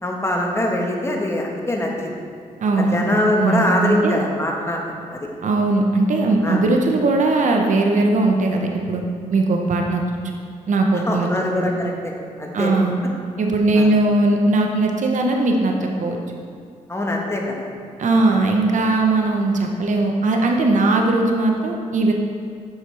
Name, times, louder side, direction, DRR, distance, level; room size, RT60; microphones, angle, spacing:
voice 1, 0.0-2.1 2.8-4.8 5.1-5.3 6.4-6.6 10.9-12.1 12.4-12.8 13.7-13.9 16.9-17.7 18.3-18.4, left 1 dB, 20° left, -1 dB, 1.4 m, -23 dB
voice 2, 2.6-4.2 5.4-9.0 9.3-10.0 10.7-11.7 12.5-13.0 13.4-16.2 18.0-22.1, right 2 dB, 65° right, 2 dB, 0.9 m, -19 dB
8.1 x 6.0 x 3.4 m, 2.3 s
supercardioid pair, 55°, 14 cm